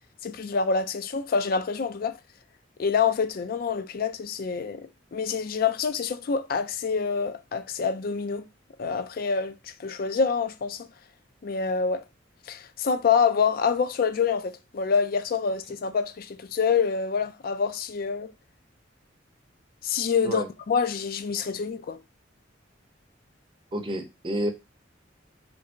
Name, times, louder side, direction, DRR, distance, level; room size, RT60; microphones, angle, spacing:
voice 1, 0.2-2.2 2.8-8.4 8.8-9.5 9.8-10.9 11.4-12.0 12.5-18.3 19.8-22.0, left 5 dB, 50° left, 0.4 m, -26 dB
voice 2, 23.7-24.5, right 1 dB, 25° right, 0.6 m, -29 dB
3.6 x 2.6 x 4.3 m
head